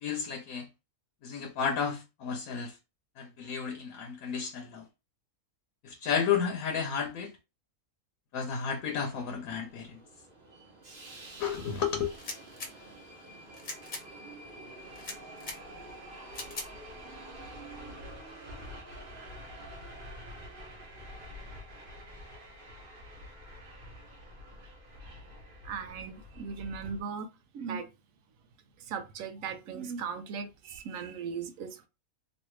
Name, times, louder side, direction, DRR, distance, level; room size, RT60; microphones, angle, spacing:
voice 1, 0.0-0.7 1.2-2.7 3.2-4.8 5.8-7.3 8.3-10.0 11.4-12.2, left 7 dB, 75° left, 1.1 m, -32 dB
Subway metro underground, 9.1-27.0, equal, 40° right, 1.1 m, -47 dB
sound 1, 12.1-12.7 13.5-14.0 14.9-15.6 16.3-16.7, left 2 dB, 40° left, 0.9 m, -40 dB
voice 2, 25.6-27.3 27.5-27.9 28.9-31.9, right 6 dB, 70° right, 1.0 m, -38 dB
3.2 x 2.5 x 3.1 m
omnidirectional pair, 1.5 m